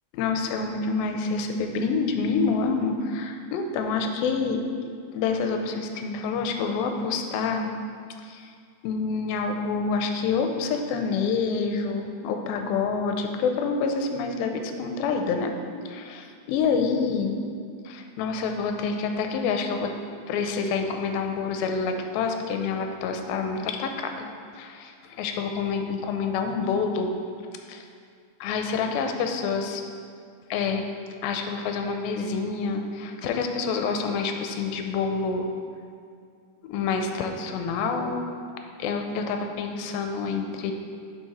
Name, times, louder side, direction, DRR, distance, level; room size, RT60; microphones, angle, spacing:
voice 1, 0.1-4.6 5.1-7.7 8.2-8.5 8.8-15.6 15.9-17.4 17.8-19.9 20.3-24.3 24.5-27.1 27.5-27.9 28.4-29.8 30.5-30.9 31.2-35.5 36.6-38.2 38.8-40.7, left 5 dB, 80° left, 5 dB, 2.3 m, -27 dB
8.7 x 5.8 x 4.1 m, 2.2 s
omnidirectional pair, 4.4 m